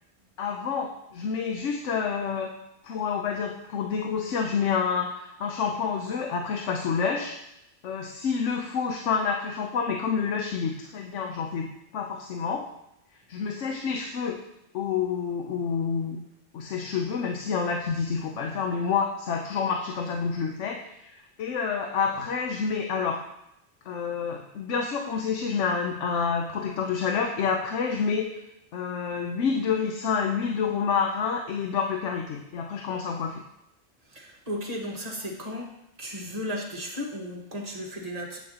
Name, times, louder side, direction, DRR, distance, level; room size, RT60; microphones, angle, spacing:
voice 1, 0.4-2.5 2.8-7.4 7.8-11.7 11.9-12.7 13.3-14.4 14.7-16.2 16.5-23.2 23.9-28.3 28.7-33.4, left 6 dB, 75° left, 3 dB, 1.0 m, -28 dB
voice 2, 34.1-35.7 36.0-38.4, equal, 30° right, -1 dB, 1.6 m, -35 dB
10.0 x 8.7 x 2.8 m, 0.83 s
omnidirectional pair, 1.2 m